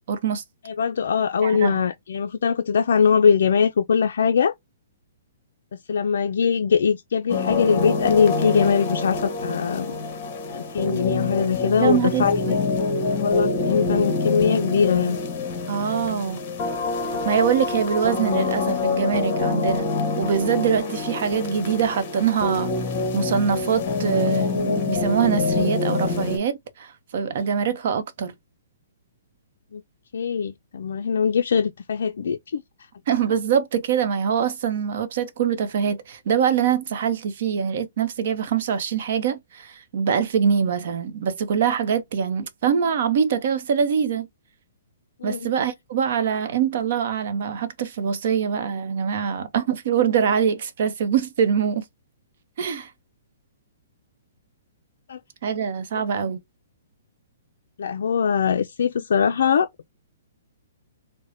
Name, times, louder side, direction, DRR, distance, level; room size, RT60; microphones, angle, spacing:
voice 1, 0.1-0.4 1.4-1.8 11.8-12.6 15.7-16.4 17.2-19.9 20.2-22.7 23.1-28.3 33.1-44.3 45.2-51.8 52.6-52.9 55.4-56.4, right 7 dB, 50° right, 0.7 m, -24 dB
voice 2, 0.7-4.5 5.7-10.0 10.5-12.6 13.2-15.2 29.7-29.8 30.1-32.6 45.2-45.5 55.1-55.2 56.0-56.1 57.8-59.9, left 6 dB, 70° left, 0.3 m, -22 dB
sound 1, 7.3-26.4, left 4 dB, 35° left, 1.1 m, -26 dB
4.8 x 2.1 x 2.5 m
hypercardioid pair, 165°, 0 cm